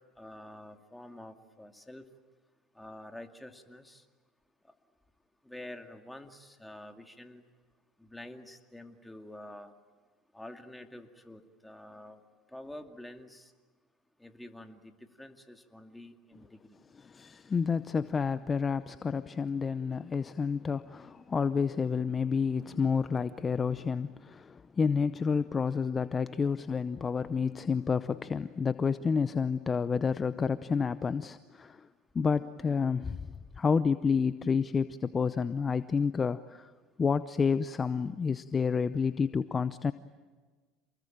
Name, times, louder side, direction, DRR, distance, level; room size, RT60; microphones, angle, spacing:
voice 1, 0.2-2.1 2.8-4.0 5.4-7.4 8.0-9.7 10.3-12.2 12.5-13.5 14.2-16.8, left 1 dB, 5° left, 5 dB, 2.3 m, -48 dB
voice 2, 17.0-31.9 32.1-33.2 33.6-36.7 37.0-39.9, left 5 dB, 25° left, 13 dB, 0.7 m, -29 dB
28.0 x 21.0 x 9.0 m, 1.4 s
supercardioid pair, 95°, 0 cm